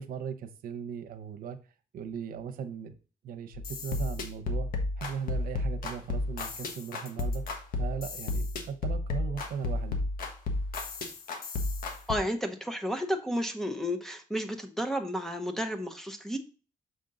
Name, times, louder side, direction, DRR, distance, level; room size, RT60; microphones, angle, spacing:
voice 1, 0.0-1.6 1.9-3.0 3.2-4.7 5.0-10.0, right 7 dB, 80° right, 0.8 m, -38 dB
sound 1, 3.5-12.2, left 2 dB, 85° left, 1.3 m, -32 dB
voice 2, 12.1-16.4, equal, 5° left, 0.8 m, -32 dB
6.5 x 5.2 x 3.9 m
cardioid pair, 145°, 15 cm